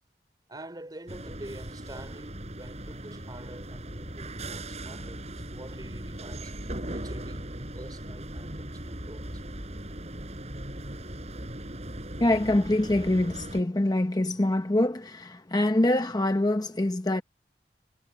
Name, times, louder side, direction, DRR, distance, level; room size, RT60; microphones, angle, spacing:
voice 1, 0.5-9.4, right 1 dB, 25° right, 3.1 m, -46 dB
sound 1, 1.1-13.6, right 1 dB, 40° right, 6.6 m, -38 dB
voice 2, 12.2-17.2, left 1 dB, 25° left, 0.8 m, -25 dB
head